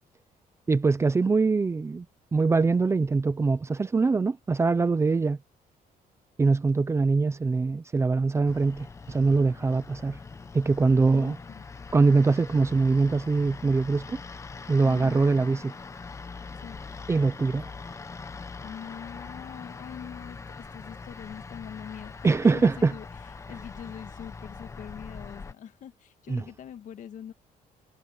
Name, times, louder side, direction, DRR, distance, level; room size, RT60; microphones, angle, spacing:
voice 1, 0.7-2.1 2.3-5.4 6.4-10.2 10.5-11.4 11.9-14.2 14.7-15.7 17.1-17.7 22.2-22.9 26.3-26.4, right 4 dB, 20° right, 0.7 m, -23 dB
sound 1, 8.5-25.5, left 4 dB, 20° left, 0.9 m, -42 dB
voice 2, 11.1-11.7 14.8-15.2 16.6-16.8 18.6-22.1 22.4-23.1 23.5-27.3, left 9 dB, 55° left, 1.7 m, -43 dB
cardioid pair, 170°, 15 cm